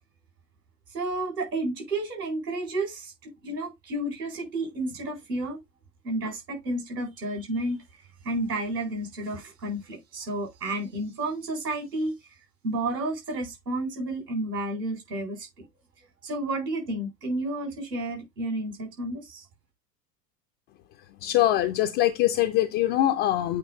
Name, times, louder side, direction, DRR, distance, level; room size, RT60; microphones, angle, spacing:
voice 1, 0.9-5.6 6.0-7.8 8.2-12.1 12.6-15.7 16.2-19.4, right 2 dB, 75° right, 4.3 m, -31 dB
voice 2, 21.2-23.6, left 13 dB, 25° left, 0.4 m, -23 dB
8.5 x 2.8 x 4.3 m
figure-of-eight pair, 80°, 49 cm